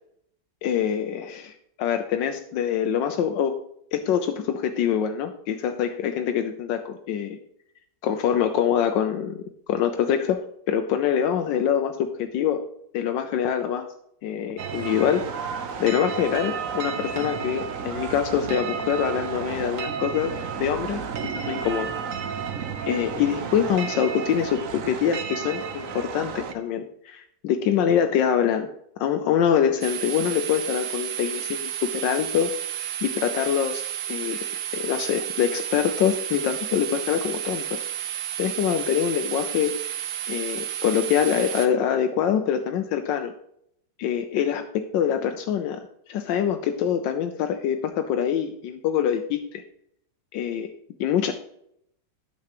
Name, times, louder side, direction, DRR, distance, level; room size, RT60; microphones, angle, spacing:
voice 1, 0.6-3.6 3.9-7.4 8.0-9.4 9.7-12.7 12.9-13.9 14.2-21.0 21.3-21.9 22.9-28.7 29.0-32.5 33.0-37.8 38.4-39.8 40.3-43.3 44.0-49.6 50.3-51.3, left 8 dB, 80° left, 6 dB, 1.3 m, -25 dB
sound 1, 14.6-26.5, right 6 dB, 60° right, 1.0 m, -32 dB
sound 2, 29.8-41.7, right 11 dB, 85° right, 1.7 m, -32 dB
10.5 x 7.0 x 3.0 m, 0.72 s
omnidirectional pair, 1.9 m